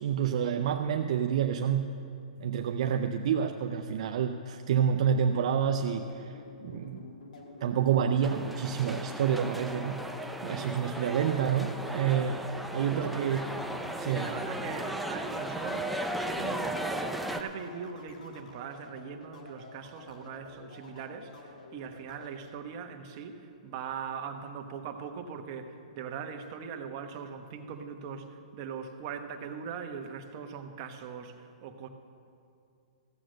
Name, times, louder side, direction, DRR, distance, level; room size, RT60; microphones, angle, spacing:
voice 1, 0.0-1.9 2.4-7.0 7.6-10.0 10.4-12.4 12.7-13.4 14.0-14.3, right 8 dB, 60° right, 5 dB, 0.5 m, -28 dB
sound 1, 6.1-22.3, left 3 dB, 90° left, 1.8 m, -50 dB
sound 2, 8.2-17.4, right 1 dB, ahead, 0.5 m, -36 dB
voice 2, 12.9-13.4 14.0-16.9 17.3-31.9, right 6 dB, 35° right, 5 dB, 1.0 m, -41 dB
15.0 x 7.6 x 6.4 m, 2.5 s
hypercardioid pair, 155°, 4 cm